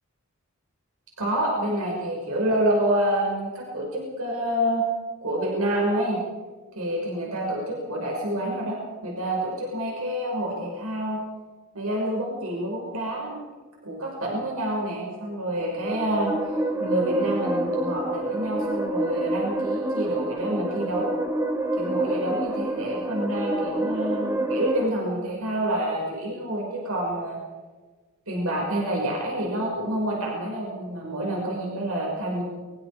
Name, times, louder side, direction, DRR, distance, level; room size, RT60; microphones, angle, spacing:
voice 1, 1.2-4.8 5.2-6.2 6.7-11.2 11.7-13.4 13.8-16.3 16.8-21.1 21.8-27.4 28.3-32.4, right 1 dB, 85° right, -2 dB, 6.0 m, -27 dB
sound 1, 15.5-24.9, right 1 dB, 15° right, 1.4 m, -28 dB
24.0 x 22.5 x 5.0 m, 1.4 s
head